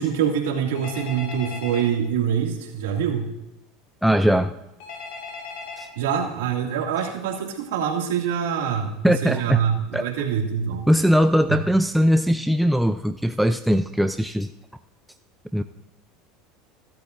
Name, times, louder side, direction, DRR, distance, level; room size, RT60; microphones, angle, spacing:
voice 1, 0.0-3.3 6.0-10.9 11.5-11.6, right 8 dB, 90° right, 1 dB, 2.3 m, -25 dB
Telephone, 0.7-1.9 4.8-5.9, left 4 dB, 75° left, 3.0 m, -37 dB
voice 2, 4.0-4.5 5.8-5.9 9.0-9.6 9.9-10.1 10.9-14.5 15.5-15.6, equal, ahead, 8 dB, 0.4 m, -20 dB
16.5 x 12.0 x 2.6 m, 0.92 s
supercardioid pair, 115°, 0 cm